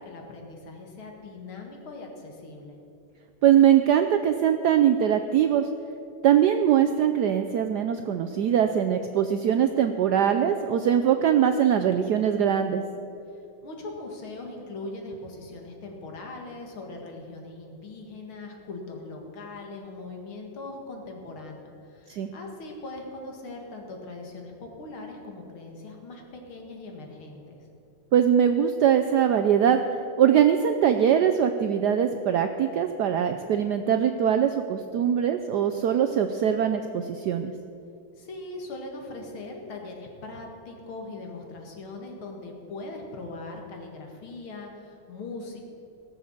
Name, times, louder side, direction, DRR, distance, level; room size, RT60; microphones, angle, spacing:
voice 1, 0.0-2.8 13.6-27.6 38.2-45.6, left 2 dB, 75° left, 1 dB, 2.6 m, -40 dB
voice 2, 3.4-5.7 6.2-12.8 22.1-22.3 28.1-29.8 30.2-37.5, right 9 dB, 75° right, 7 dB, 0.9 m, -22 dB
18.0 x 7.0 x 7.2 m, 2.6 s
omnidirectional pair, 2.3 m